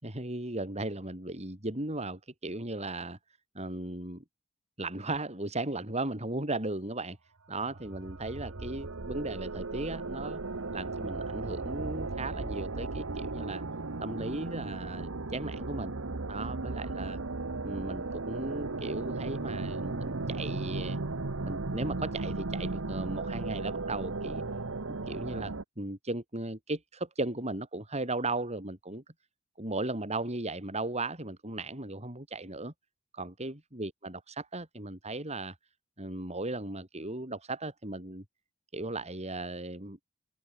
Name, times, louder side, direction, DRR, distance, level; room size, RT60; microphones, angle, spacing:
voice 1, 0.0-3.2 3.6-4.2 4.8-7.2 7.5-10.4 10.7-13.6 14.0-15.9 16.3-17.2 17.6-21.0 21.4-24.5 25.1-29.0 29.6-32.7 33.1-35.6 36.0-38.2 38.7-40.0, right 2 dB, 30° right, 5.4 m, -36 dB
sound 1, 7.7-25.6, right 3 dB, 70° right, 1.2 m, -36 dB
open air
head